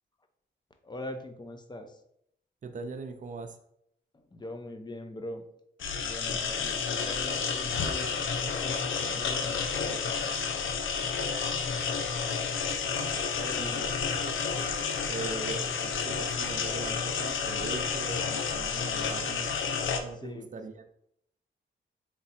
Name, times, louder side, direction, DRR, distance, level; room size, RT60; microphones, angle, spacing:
voice 1, 0.8-2.0 4.1-5.5 6.0-10.4 13.3-13.9 15.0-15.8 20.1-20.6, left 1 dB, 20° left, 6 dB, 0.6 m, -43 dB
voice 2, 2.6-3.6 6.3-6.6 13.6-14.0 14.2-14.4 15.1-19.5 20.0-20.9, right 4 dB, 40° right, 6 dB, 0.5 m, -40 dB
sound 1, 5.8-20.0, left 5 dB, 75° left, 0.6 m, -31 dB
3.3 x 3.0 x 4.2 m, 0.74 s
cardioid pair, 75°, 20 cm